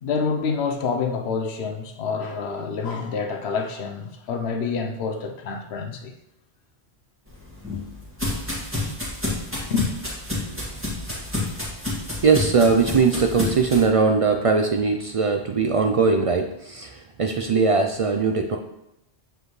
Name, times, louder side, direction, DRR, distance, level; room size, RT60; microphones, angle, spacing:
voice 1, 0.0-6.1 9.7-9.9, left 5 dB, 70° left, 1.0 m, -27 dB
sound 1, 7.3-13.8, left 2 dB, 10° right, 2.1 m, -30 dB
voice 2, 12.2-18.6, right 4 dB, 65° right, 0.3 m, -20 dB
7.6 x 5.1 x 3.1 m
omnidirectional pair, 1.2 m